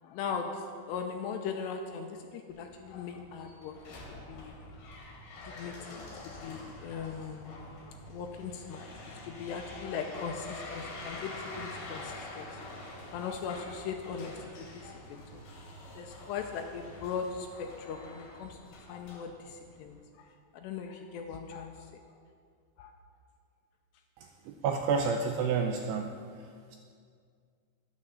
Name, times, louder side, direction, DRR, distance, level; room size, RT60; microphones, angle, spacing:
voice 1, 0.0-3.8 4.1-4.8 5.1-7.5 7.8-12.5 12.8-15.7 15.9-22.2 22.8-23.0, left 6 dB, 80° left, 4 dB, 2.6 m, -40 dB
sound 1, 2.5-20.0, left 2 dB, 55° left, 3.2 m, -46 dB
voice 2, 24.5-26.1, right 5 dB, 80° right, 4 dB, 2.4 m, -29 dB
12.5 x 9.7 x 6.9 m, 2.2 s
omnidirectional pair, 5.4 m